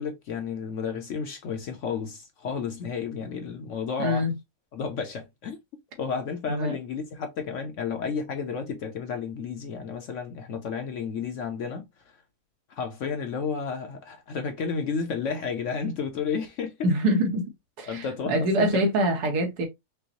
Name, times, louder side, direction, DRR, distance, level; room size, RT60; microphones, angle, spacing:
voice 1, 0.0-4.3 4.7-5.6 6.0-12.2 12.7-16.9 17.8-18.8, left 5 dB, 60° left, 0.9 m, -32 dB
voice 2, 4.0-4.3 6.5-6.8 16.8-17.5 17.8-19.7, equal, 80° right, 1.6 m, -25 dB
5.3 x 2.0 x 2.8 m
omnidirectional pair, 1.7 m